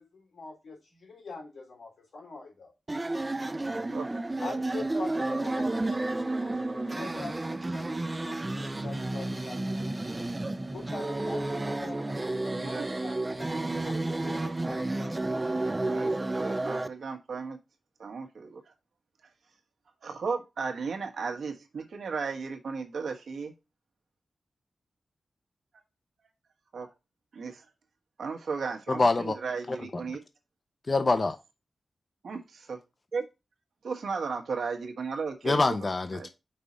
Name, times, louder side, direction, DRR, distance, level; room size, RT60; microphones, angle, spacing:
voice 1, 0.0-2.7 4.4-10.3 10.7-15.4, left 3 dB, 85° left, 3.3 m, -44 dB
sound 1, 2.9-16.9, right 2 dB, 20° right, 0.4 m, -31 dB
voice 2, 12.5-13.1 13.5-14.5 15.8-17.6 18.0-18.6 20.0-23.5 26.7-26.9 27.3-27.6 28.2-30.2 32.2-32.8 33.1-33.2 33.8-35.8 36.1-36.3, right 5 dB, 90° right, 1.2 m, -35 dB
voice 3, 28.9-29.3 29.7-29.8 30.9-31.4 35.4-36.3, left 3 dB, 35° left, 0.6 m, -25 dB
5.4 x 4.2 x 5.0 m
wide cardioid pair, 125°, 0 cm